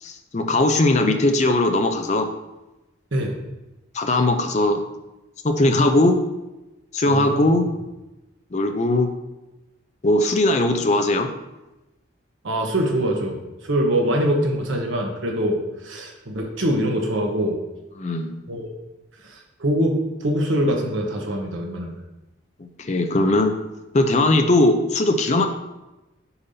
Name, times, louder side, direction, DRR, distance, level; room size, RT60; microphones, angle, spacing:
voice 1, 0.0-2.3 3.9-4.8 5.4-6.2 6.9-7.7 8.5-9.1 10.0-11.3 18.0-18.3 22.8-23.5 23.9-25.5, left 2 dB, 35° left, 6 dB, 0.5 m, -19 dB
voice 2, 7.1-7.5 12.4-13.4 13.6-17.6 18.5-18.7 19.2-22.0, equal, 80° right, 1 dB, 1.1 m, -23 dB
6.9 x 5.4 x 2.8 m, 1.0 s
head